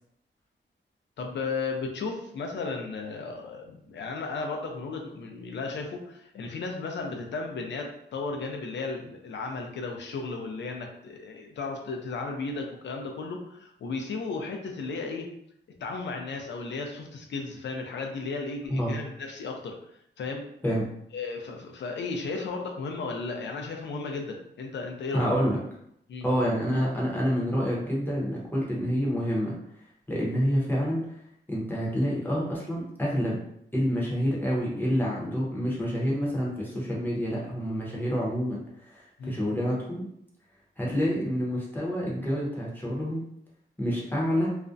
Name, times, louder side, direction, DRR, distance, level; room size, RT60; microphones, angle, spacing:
voice 1, 1.2-15.3 15.8-19.7 20.2-20.5 21.1-25.3 26.1-26.2 39.2-39.4, left 4 dB, 70° left, 2 dB, 0.5 m, -34 dB
voice 2, 25.1-25.6 26.2-29.5 30.1-31.1 31.5-33.4 33.7-40.1 40.8-43.3 43.8-44.6, equal, 10° left, -5 dB, 0.7 m, -28 dB
2.4 x 2.0 x 2.5 m, 0.74 s
wide cardioid pair, 135°, 19 cm